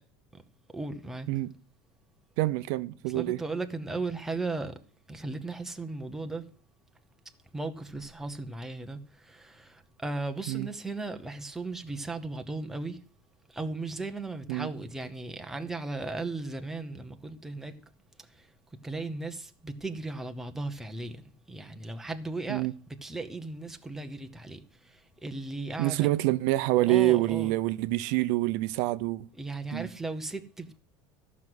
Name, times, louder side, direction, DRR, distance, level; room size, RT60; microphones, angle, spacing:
voice 1, 0.7-1.3 3.1-4.7 5.1-6.4 7.5-13.0 13.5-17.8 18.4-18.5 18.8-21.2 21.5-22.7 23.0-26.1 26.9-27.5 29.4-30.8, right 3 dB, 5° right, 0.8 m, -36 dB
voice 2, 2.4-3.4 10.5-10.7 14.5-14.7 22.5-22.7 25.8-29.3 29.7-29.9, right 18 dB, 60° right, 0.6 m, -26 dB
14.0 x 6.1 x 7.9 m
cardioid pair, 170°, 10 cm